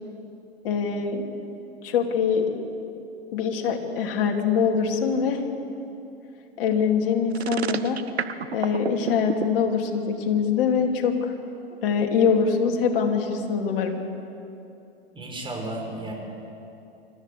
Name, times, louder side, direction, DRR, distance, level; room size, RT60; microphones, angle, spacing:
voice 1, 0.6-1.2 1.8-2.6 3.3-5.6 6.6-8.1 8.5-11.3 11.8-14.0, left 6 dB, 60° left, 2 dB, 3.0 m, -24 dB
sound 1, 7.3-9.5, right 7 dB, 90° right, 0.9 m, -28 dB
voice 2, 15.1-16.1, right 1 dB, 15° right, 0 dB, 5.5 m, -33 dB
25.0 x 14.0 x 8.4 m, 2.8 s
hypercardioid pair, 100°, 31 cm